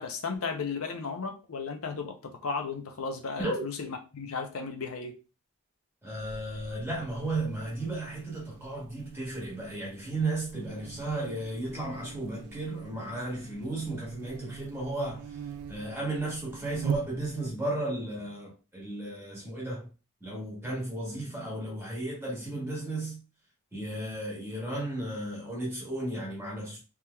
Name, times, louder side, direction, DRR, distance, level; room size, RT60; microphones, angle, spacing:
voice 1, 0.0-5.1, left 4 dB, 75° left, 0.6 m, -35 dB
voice 2, 6.0-19.9 20.2-23.2 23.7-26.8, right 2 dB, 10° right, 1.5 m, -34 dB
Buzz, 6.2-17.6, right 7 dB, 80° right, 0.3 m, -42 dB
3.5 x 2.9 x 2.2 m
head